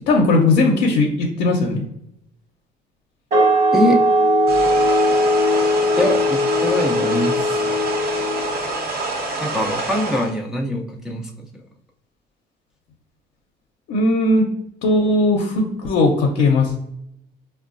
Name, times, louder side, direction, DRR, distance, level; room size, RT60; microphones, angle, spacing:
voice 1, 0.1-1.8 13.9-14.5 14.8-16.8, left 2 dB, 80° left, 0 dB, 0.6 m, -17 dB
sound 1, 3.3-8.7, left 1 dB, 45° right, 1.1 m, -19 dB
sound 2, 4.5-10.3, right 2 dB, 70° right, 1.0 m, -26 dB
voice 2, 6.0-7.9 8.9-9.0 9.4-11.6, left 1 dB, 5° right, 0 dB, 0.4 m, -23 dB
4.6 x 2.2 x 2.5 m, 0.76 s
cardioid pair, 110°, 17 cm